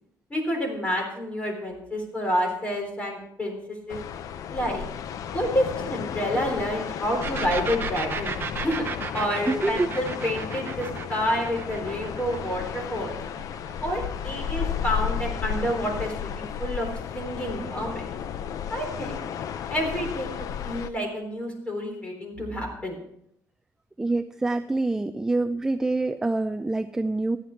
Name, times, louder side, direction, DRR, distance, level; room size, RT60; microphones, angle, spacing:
voice 1, 0.3-4.0 4.5-4.9 5.3-8.8 9.1-13.2 13.8-16.9 17.1-18.1 18.7-19.3 19.7-23.0, equal, 20° left, 1 dB, 3.8 m, -29 dB
sound 1, 3.9-20.9, left 8 dB, 55° left, 0.6 m, -33 dB
sound 2, 7.2-14.7, right 6 dB, 35° right, 0.9 m, -35 dB
voice 2, 9.5-9.9 24.0-27.4, right 2 dB, 10° right, 8 dB, 0.4 m, -26 dB
14.0 x 10.0 x 4.5 m, 0.74 s
cardioid pair, 150°, 7 cm